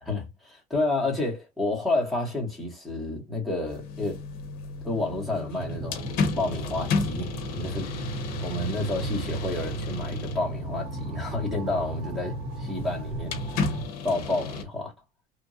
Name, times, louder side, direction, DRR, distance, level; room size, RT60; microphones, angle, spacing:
voice 1, 0.0-4.2 4.8-6.0 6.4-7.9 8.4-13.4 14.0-14.9, left 2 dB, ahead, 1.1 m, -30 dB
sound 1, 3.7-14.6, left 4 dB, 60° left, 0.7 m, -34 dB
sound 2, 5.6-13.9, right 3 dB, 45° right, 0.6 m, -35 dB
3.0 x 2.5 x 2.6 m
cardioid pair, 165°, 17 cm